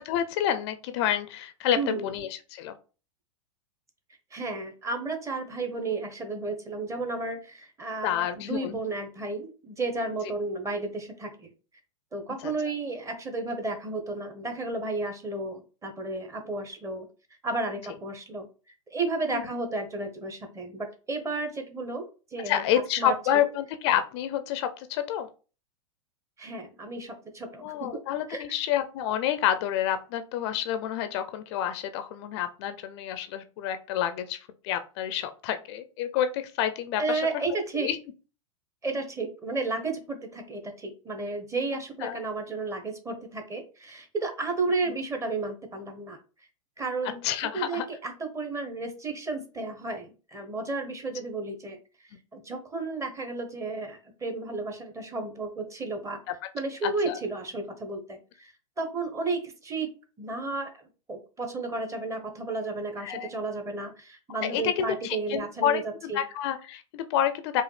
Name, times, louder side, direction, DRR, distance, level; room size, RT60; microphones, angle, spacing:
voice 1, 0.0-2.7 8.0-8.8 12.4-12.5 19.3-19.5 22.5-25.3 27.6-37.2 37.7-38.0 42.0-42.2 47.2-47.8 56.8-57.2 63.0-63.3 64.4-67.6, left 10 dB, 50° left, 10 dB, 0.4 m, -29 dB
voice 2, 1.7-2.1 4.3-11.5 12.1-17.1 17.4-18.5 18.9-22.0 22.3-23.4 26.4-28.0 28.3-28.4 37.0-37.9 38.8-46.2 46.8-47.2 47.5-51.8 52.3-56.2 56.5-59.9 60.2-60.7 61.1-66.2, right 3 dB, 15° right, 5 dB, 0.9 m, -33 dB
4.8 x 2.4 x 3.2 m, 0.35 s
hypercardioid pair, 105°, 18 cm